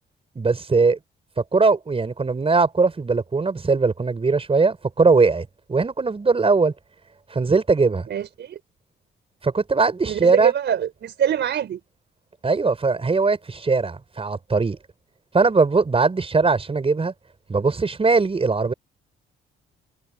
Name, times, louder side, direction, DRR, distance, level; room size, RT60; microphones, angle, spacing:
voice 1, 0.4-1.0 1.4-6.7 7.3-8.1 9.4-10.5 12.4-14.8 15.3-17.1 17.5-18.7, right 4 dB, 30° right, 5.2 m, -20 dB
voice 2, 8.1-8.6 10.0-11.8, right 9 dB, 65° right, 4.6 m, -24 dB
cardioid pair, 90°, 20 cm